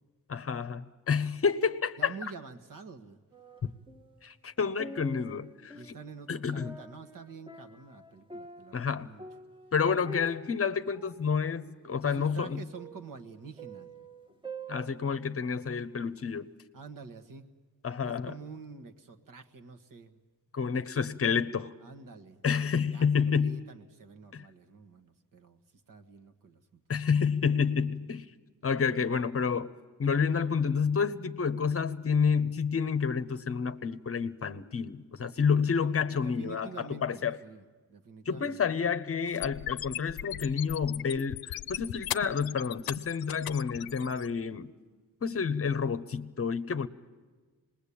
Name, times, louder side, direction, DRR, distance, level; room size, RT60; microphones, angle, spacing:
voice 1, 0.3-2.1 4.2-6.0 6.3-6.8 8.7-9.1 9.7-12.6 14.7-16.5 17.8-18.3 20.5-21.7 22.4-23.7 24.3-24.5 26.9-28.3 28.6-29.7 30.0-37.4 38.3-44.7 45.2-46.9, left 6 dB, 40° left, 13 dB, 0.8 m, -29 dB
voice 2, 2.0-3.2 5.7-9.2 12.0-14.1 16.7-17.5 18.0-20.2 21.8-22.4 22.9-25.6 25.9-26.8 27.7-27.9 36.1-38.6, right 5 dB, 60° right, 6 dB, 1.6 m, -47 dB
sound 1, 3.3-4.2 4.6-15.7 16.2-16.3, right 2 dB, 15° right, 1.1 m, -48 dB
sound 2, 39.3-44.3, left 12 dB, 70° left, 0.7 m, -37 dB
26.5 x 20.5 x 8.5 m, 1.4 s
wide cardioid pair, 135°, 37 cm